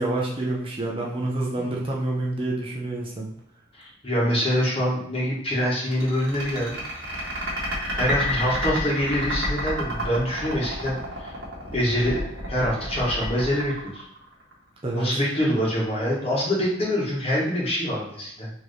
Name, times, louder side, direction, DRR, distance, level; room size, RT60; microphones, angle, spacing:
voice 1, 0.0-3.3 14.8-15.2, right 2 dB, 30° right, -2 dB, 0.7 m, -27 dB
voice 2, 3.8-6.8 7.9-11.3 11.7-14.1 14.9-18.5, equal, 30° left, -4 dB, 1.3 m, -25 dB
sound 1, 5.9-14.5, equal, 75° right, 1.5 m, -30 dB
4.4 x 3.0 x 3.2 m, 0.75 s
head